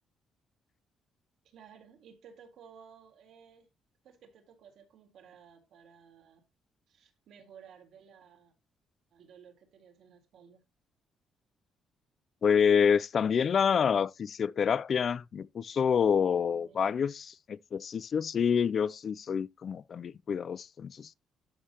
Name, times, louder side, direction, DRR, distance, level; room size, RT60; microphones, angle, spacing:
voice 1, 1.4-3.7 4.0-6.4 6.9-8.5 9.1-10.6 16.3-17.0, right 7 dB, 75° right, 3.4 m, -56 dB
voice 2, 12.4-21.1, left 7 dB, 50° left, 0.4 m, -27 dB
13.0 x 5.5 x 2.9 m
cardioid pair, 90°, 0 cm